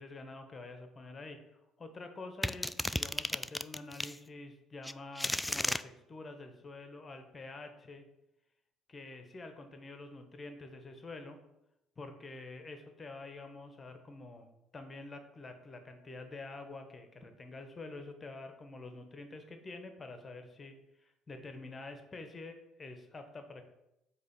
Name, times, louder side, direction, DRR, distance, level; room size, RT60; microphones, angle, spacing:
voice 1, 0.0-1.4 1.8-8.0 8.9-11.4 12.0-14.5 14.7-23.6, left 3 dB, 30° left, 7 dB, 1.1 m, -47 dB
sound 1, 2.4-4.2 4.8-5.8, left 1 dB, 10° left, 0.3 m, -34 dB
7.9 x 3.0 x 5.5 m, 0.88 s
hypercardioid pair, 55°, 0 cm